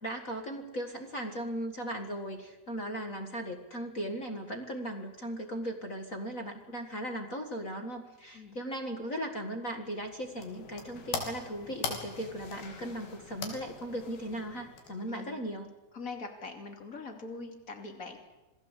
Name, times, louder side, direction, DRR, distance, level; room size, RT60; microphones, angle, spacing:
voice 1, 0.0-15.7, right 1 dB, 50° left, 4 dB, 0.9 m, -37 dB
sound 1, 9.9-15.3, left 5 dB, 90° left, 5.1 m, -41 dB
voice 2, 15.0-15.4 15.9-18.2, left 3 dB, 25° left, 4 dB, 2.9 m, -42 dB
27.5 x 18.5 x 8.2 m, 1.1 s
omnidirectional pair, 4.3 m